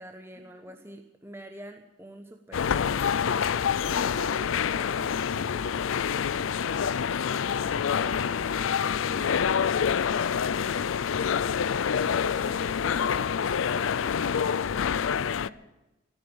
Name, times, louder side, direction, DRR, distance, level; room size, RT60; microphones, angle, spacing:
voice 1, 0.0-3.0, right 1 dB, 15° right, 5 dB, 1.1 m, -45 dB
sound 1, 2.5-15.5, left 7 dB, 90° left, 0.4 m, -27 dB
voice 2, 3.8-5.6 12.0-13.3, left 1 dB, 65° right, 0 dB, 7.8 m, -46 dB
14.0 x 14.0 x 7.2 m, 1.0 s
head